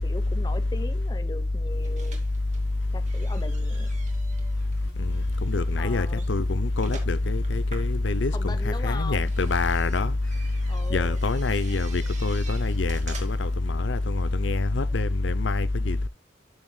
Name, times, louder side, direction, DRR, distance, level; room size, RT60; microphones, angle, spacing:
voice 1, 0.0-2.3 2.9-3.9 5.8-6.3 8.3-9.3 10.7-11.2, left 2 dB, 20° left, 0.9 m, -39 dB
sound 1, 1.7-13.6, right 4 dB, 40° right, 2.5 m, -48 dB
voice 2, 5.0-10.1 10.9-16.1, left 2 dB, 70° left, 0.7 m, -25 dB
13.0 x 7.1 x 2.3 m
head